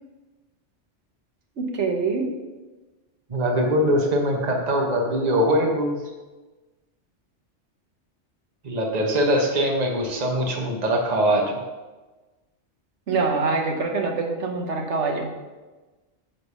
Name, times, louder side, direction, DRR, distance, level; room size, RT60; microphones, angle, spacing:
voice 1, 1.6-2.3 13.1-15.3, right 4 dB, 75° right, 2 dB, 1.3 m, -25 dB
voice 2, 3.3-5.9 8.6-11.5, equal, 40° right, 1 dB, 1.1 m, -22 dB
9.8 x 3.4 x 5.4 m, 1.2 s
omnidirectional pair, 1.2 m